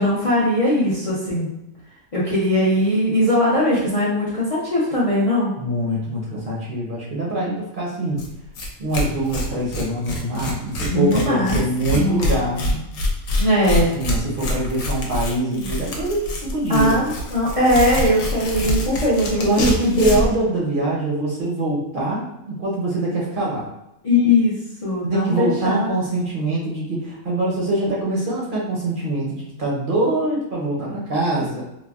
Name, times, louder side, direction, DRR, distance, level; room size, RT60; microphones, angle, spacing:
voice 1, 0.0-1.5 2.1-5.6 10.9-11.6 11.9-12.3 13.4-13.9 15.5-15.7 16.7-20.2 24.0-25.9, left 1 dB, 55° left, -8 dB, 0.3 m, -20 dB
voice 2, 5.6-8.2 8.8-12.8 13.7-17.0 19.4-23.7 25.0-31.6, right 1 dB, 50° right, -4 dB, 0.6 m, -24 dB
Tearing, 8.2-8.3 8.5-8.7 8.9-20.3, left 1 dB, 70° left, 1.0 m, -25 dB
3.2 x 2.2 x 2.3 m, 0.89 s
omnidirectional pair, 1.5 m